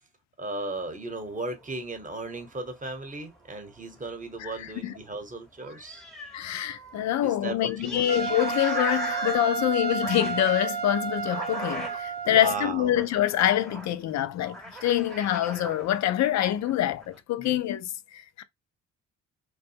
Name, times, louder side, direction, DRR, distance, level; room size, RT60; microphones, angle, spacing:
voice 1, 0.4-6.0 7.2-8.1 12.2-12.9, right 3 dB, 25° right, 0.9 m, -36 dB
sound 1, 0.8-5.1 5.3-5.4 5.6-16.3 16.6-17.2, equal, ahead, 0.8 m, -41 dB
voice 2, 6.3-18.4, left 12 dB, 55° left, 0.5 m, -26 dB
Trumpet, 8.1-12.7, right 5 dB, 90° right, 0.7 m, -31 dB
2.6 x 2.3 x 2.7 m
supercardioid pair, 55°, 33 cm